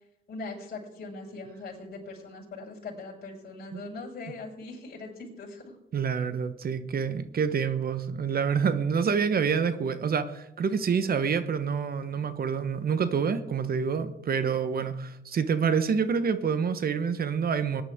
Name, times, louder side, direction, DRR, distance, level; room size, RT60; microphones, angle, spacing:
voice 1, 0.3-5.8, left 3 dB, 50° left, -3 dB, 6.1 m, -41 dB
voice 2, 5.9-17.8, right 6 dB, 50° right, 12 dB, 1.1 m, -27 dB
20.5 x 11.0 x 3.7 m, 0.80 s
cardioid pair, 90°, 20 cm